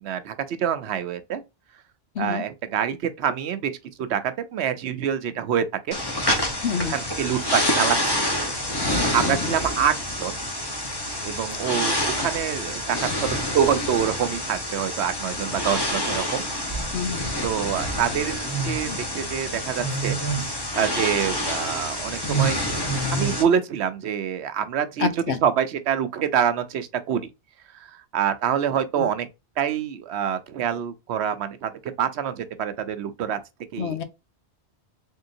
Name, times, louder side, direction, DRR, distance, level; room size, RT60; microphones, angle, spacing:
voice 1, 0.0-1.4 2.2-6.0 6.9-8.2 8.5-8.6 9.1-10.4 11.2-16.4 17.4-20.2 20.5-22.6 23.1-27.3 27.9-29.3 29.6-33.4 33.7-34.0, right 8 dB, 75° right, 0.9 m, -26 dB
sound 1, 5.9-23.4, equal, 25° left, 1.0 m, -27 dB
voice 2, 6.6-6.9 9.2-9.5 16.9-17.3 25.0-25.4 29.0-29.1 33.8-34.0, left 6 dB, 80° left, 1.0 m, -27 dB
3.7 x 3.6 x 2.6 m
omnidirectional pair, 1.1 m